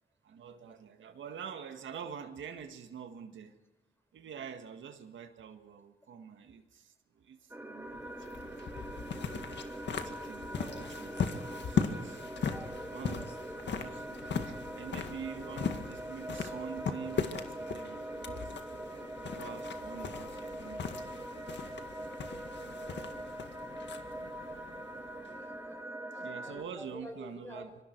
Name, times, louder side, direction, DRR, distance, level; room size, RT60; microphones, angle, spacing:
voice 1, 0.2-3.5 4.1-9.0 9.9-12.3 12.9-13.4 13.7-18.6 19.2-21.6 26.1-27.7, right 7 dB, 80° right, 6 dB, 1.8 m, -46 dB
sound 1, 7.5-26.6, right 1 dB, 10° right, 2.5 m, -43 dB
sound 2, 7.9-25.5, left 6 dB, 70° left, 1.9 m, -39 dB
voice 2, 10.5-10.9 12.5-13.6 25.2-27.8, equal, 10° left, 4 dB, 6.3 m, -49 dB
25.5 x 23.5 x 4.6 m, 1.2 s
cardioid pair, 75°, 19 cm